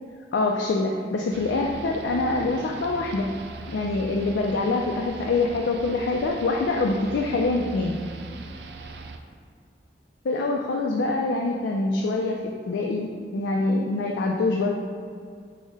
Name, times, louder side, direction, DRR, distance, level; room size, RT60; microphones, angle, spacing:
voice 1, 0.3-3.3 3.7-8.0 10.2-12.4 12.7-14.7, left 3 dB, 80° left, 1 dB, 0.4 m, -25 dB
sound 1, 1.3-9.2, right 3 dB, 65° right, 0.3 m, -40 dB
5.4 x 2.1 x 4.7 m, 2.2 s
head